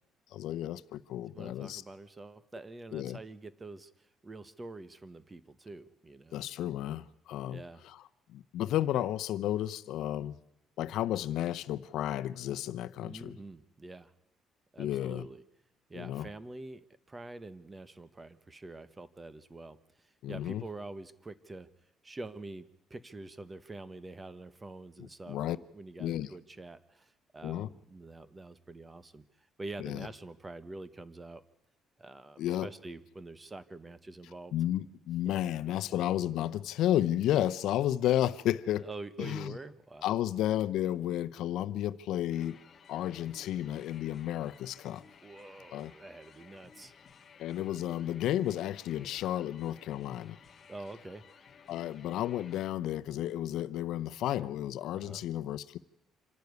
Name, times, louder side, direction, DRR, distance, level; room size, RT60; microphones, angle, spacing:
voice 1, 0.3-1.8 2.9-3.2 6.3-8.0 8.3-10.4 10.8-13.4 14.8-15.3 15.9-16.3 20.2-20.6 25.3-25.6 26.0-26.3 27.4-27.7 29.8-30.1 32.4-32.7 34.5-38.9 39.2-39.6 40.0-42.6 42.9-45.0 45.7-45.9 47.4-50.4 51.7-55.8, left 12 dB, 75° left, 0.7 m, -32 dB
voice 2, 1.3-6.4 7.5-7.8 13.0-14.1 14.7-15.4 15.9-21.7 22.0-31.4 32.0-34.6 38.8-40.2 45.2-46.9 50.7-51.2 54.9-55.2, right 2 dB, 20° right, 1.1 m, -46 dB
sound 1, 42.3-52.7, left 6 dB, 35° left, 1.5 m, -57 dB
26.5 x 12.0 x 9.5 m
cardioid pair, 130°, 0 cm